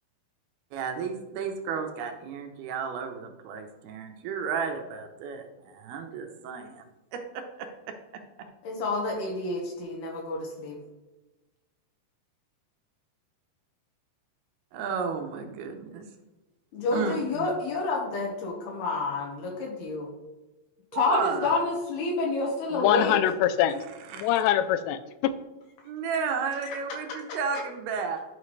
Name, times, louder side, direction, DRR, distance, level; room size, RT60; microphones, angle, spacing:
voice 1, 0.7-6.8 7.1-7.9 14.7-16.1 16.9-17.5 20.9-21.6 24.1-24.4 25.9-28.2, right 6 dB, 75° right, 4 dB, 2.7 m, -33 dB
voice 2, 8.6-10.8 16.7-20.1 20.9-23.2 26.6-26.8 27.1-27.4, left 3 dB, 70° left, 0 dB, 3.2 m, -29 dB
voice 3, 22.8-23.8 24.2-25.3, left 11 dB, 85° left, 12 dB, 2.8 m, -24 dB
11.5 x 5.9 x 3.3 m, 1.1 s
omnidirectional pair, 4.9 m